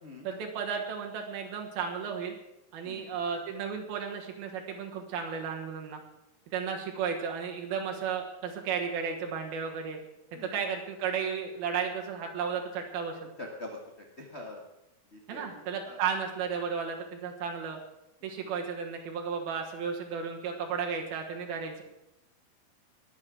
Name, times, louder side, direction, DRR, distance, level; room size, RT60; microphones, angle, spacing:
voice 1, 0.2-2.4 2.7-6.0 6.5-10.0 10.5-13.3 15.3-17.8 18.2-21.8, right 6 dB, 85° right, 2 dB, 3.3 m, -34 dB
voice 2, 2.8-3.2 10.3-10.6 13.4-13.8 14.2-14.6 15.1-16.0 18.4-18.5, left 2 dB, 85° left, 0 dB, 0.5 m, -44 dB
20.5 x 7.5 x 6.2 m, 0.91 s
omnidirectional pair, 4.2 m